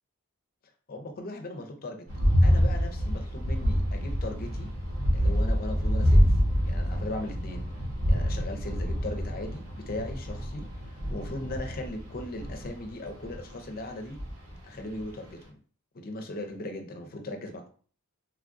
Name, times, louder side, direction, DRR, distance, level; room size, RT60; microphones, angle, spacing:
voice 1, 0.9-2.1 2.4-4.7 5.1-6.3 6.6-7.7 8.1-14.2 14.6-15.6 15.9-17.7, left 1 dB, 40° left, 4 dB, 0.5 m, -38 dB
sound 1, 2.1-13.4 14.2-14.6 15.0-15.1, equal, 85° right, 1.1 m, -26 dB
3.3 x 2.3 x 2.5 m, 0.42 s
head